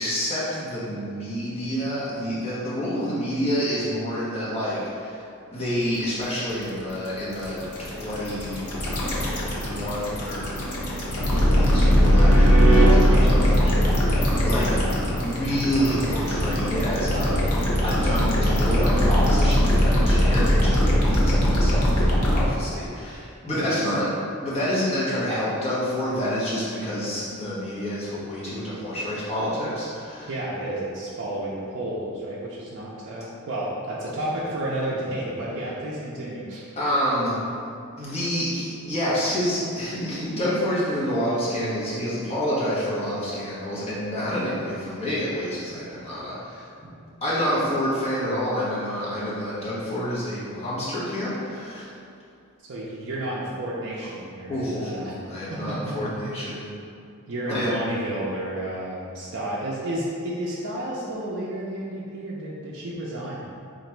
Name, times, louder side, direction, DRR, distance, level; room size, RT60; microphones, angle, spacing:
voice 1, 0.0-5.2 5.5-8.7 9.5-10.6 11.3-14.7 15.0-17.4 17.8-24.1 24.4-30.3 36.8-37.4 38.0-46.6 47.2-51.8 54.5-56.7 57.5-57.8, equal, 30° left, -10 dB, 1.0 m, -28 dB
sound 1, 5.8-22.5, equal, 85° left, 0.8 m, -20 dB
sound 2, 10.0-12.9 15.8-17.1, right 5 dB, 20° right, 0.9 m, -30 dB
voice 2, 23.5-24.1 30.3-36.6 52.6-55.1 55.5-55.9 57.3-63.4, right 1 dB, 55° right, -7 dB, 0.4 m, -31 dB
2.9 x 2.5 x 4.3 m, 2.5 s
head